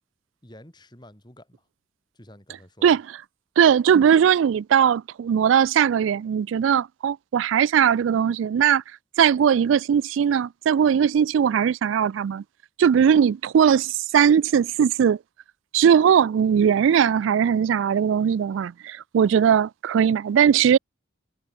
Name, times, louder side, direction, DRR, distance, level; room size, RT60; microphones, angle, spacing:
voice 1, 0.4-1.7 2.1-3.0, left 1 dB, 25° left, 5.4 m, -49 dB
voice 2, 3.6-8.8 9.2-12.4 12.8-15.2 15.7-20.8, right 8 dB, 85° right, 0.3 m, -19 dB
head